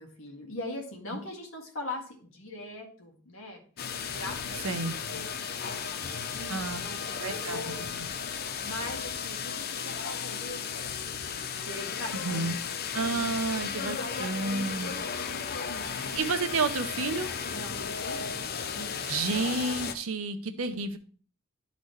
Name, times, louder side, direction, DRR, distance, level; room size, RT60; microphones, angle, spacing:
voice 1, 0.0-3.6 4.0-7.2 7.4-7.8 8.6-12.7 13.8-16.3 17.5-19.1, left 1 dB, 70° left, 1 dB, 1.8 m, -42 dB
sound 1, 3.8-19.9, left 6 dB, 45° left, 0.5 m, -35 dB
voice 2, 4.6-5.0 6.5-6.8 7.1-7.9 12.1-12.6 12.9-14.9 15.9-17.3 19.1-21.0, right 3 dB, 80° right, 9 dB, 0.8 m, -31 dB
11.5 x 4.1 x 3.2 m, 0.42 s
head